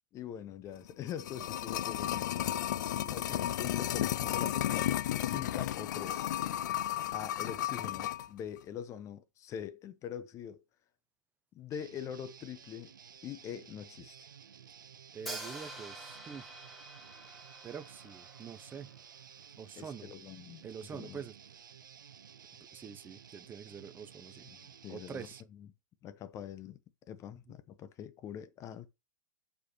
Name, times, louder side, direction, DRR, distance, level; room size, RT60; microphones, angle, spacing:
voice 1, 0.1-2.3 3.1-5.0 5.3-6.3 7.1-10.6 11.5-12.9 13.2-14.1 19.8-20.6 20.9-21.2 24.5-25.3 25.5-25.7 26.0-26.8 27.1-28.9, left 9 dB, 30° left, 0.9 m, -43 dB
sound 1, 0.9-8.3 8.6-8.7, left 12 dB, 65° left, 0.4 m, -33 dB
voice 2, 2.8-3.5 15.1-16.5 17.6-18.9 19.6-20.1 20.6-21.4 22.7-24.5 24.9-25.4, right 7 dB, 20° right, 0.6 m, -46 dB
Guitar, 11.7-25.4, right 8 dB, 90° right, 0.5 m, -54 dB
Hi-hat, 15.3-19.2, right 1 dB, ahead, 1.8 m, -47 dB
6.6 x 4.8 x 3.1 m
hypercardioid pair, 115°, 10 cm